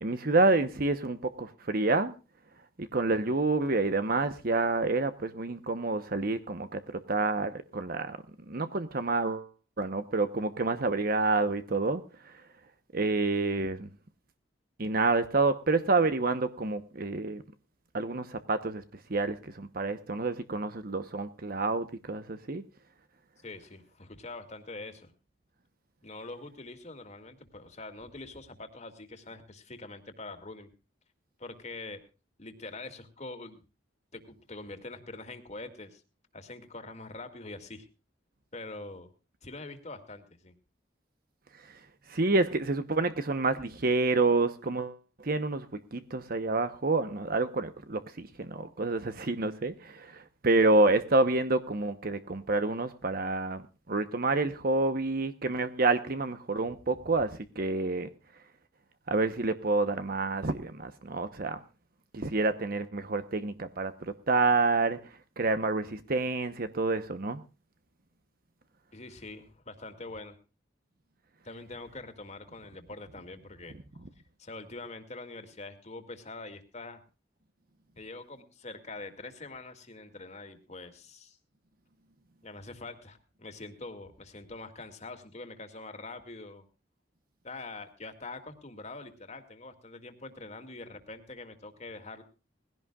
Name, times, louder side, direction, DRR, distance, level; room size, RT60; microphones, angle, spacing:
voice 1, 0.0-2.1 2.8-8.2 8.5-9.5 9.8-12.3 12.9-13.9 14.8-17.4 17.9-18.8 19.1-22.6 42.1-58.1 59.1-61.6 62.1-65.0 65.4-67.4, right 3 dB, 50° right, 1.0 m, -28 dB
voice 2, 23.4-25.1 26.0-30.7 31.4-32.0 32.4-33.6 34.1-36.0 36.3-37.9 38.5-39.1 39.4-40.5 68.9-70.4 71.4-74.1 74.4-77.0 78.0-81.4 82.4-86.7 87.4-92.2, left 2 dB, 40° left, 2.4 m, -44 dB
20.5 x 16.5 x 2.4 m
head